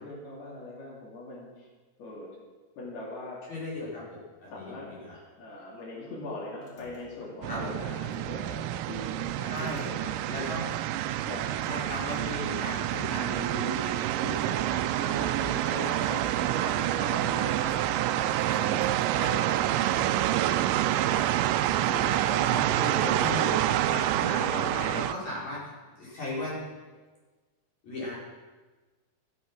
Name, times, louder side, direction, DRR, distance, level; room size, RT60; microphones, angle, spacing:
voice 1, 0.0-1.7 2.0-2.3 2.8-3.4 4.5-10.5 11.3-11.5 15.4-16.0 19.1-19.4 24.2-25.0, left 2 dB, 85° left, -6 dB, 4.8 m, -42 dB
voice 2, 3.5-5.2 7.5-7.7 9.5-9.8 10.3-10.7 11.7-15.3 15.6-23.5 23.8-26.6 27.8-28.1, left 1 dB, 45° left, -7 dB, 5.8 m, -38 dB
sound 1, 6.5-7.5 7.8-8.6 9.1-10.5 10.8-12.3 12.7-13.4 13.7-14.6 15.1-17.9 18.3-19.7 20.0-20.8 21.0-21.3, left 1 dB, 30° left, 3.5 m, -49 dB
sound 2, 7.4-25.1, right 13 dB, 85° right, 1.9 m, -27 dB
13.5 x 13.0 x 6.2 m, 1.3 s
omnidirectional pair, 4.3 m